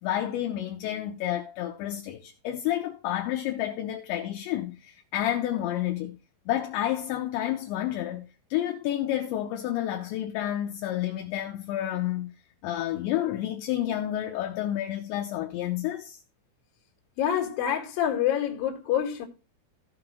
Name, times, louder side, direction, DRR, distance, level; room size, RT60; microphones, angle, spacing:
voice 1, 0.0-6.2 6.5-12.3 12.6-16.2, left 12 dB, 75° left, 3.0 m, -30 dB
voice 2, 17.2-19.3, left 10 dB, 55° left, 3.3 m, -26 dB
16.5 x 5.8 x 3.0 m
omnidirectional pair, 5.8 m